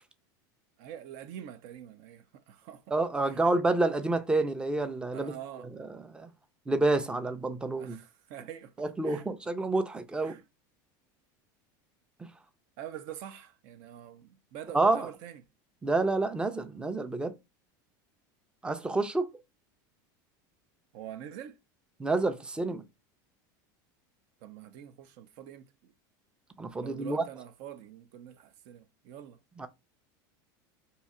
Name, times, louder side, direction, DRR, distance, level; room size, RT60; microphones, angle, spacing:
voice 1, 0.8-2.9 3.2-3.4 5.1-5.7 7.7-8.7 9.0-9.3 10.2-10.4 12.8-15.4 20.9-21.6 24.4-25.9 26.8-29.4, right 10 dB, 60° right, 0.6 m, -45 dB
voice 2, 2.9-5.4 5.7-6.3 6.7-8.0 8.8-10.4 12.2-12.3 14.7-15.1 15.8-17.3 18.6-19.3 22.0-22.8 26.6-27.2 29.6-29.7, right 2 dB, 10° right, 0.4 m, -28 dB
2.7 x 2.3 x 4.1 m
supercardioid pair, 120°, 11 cm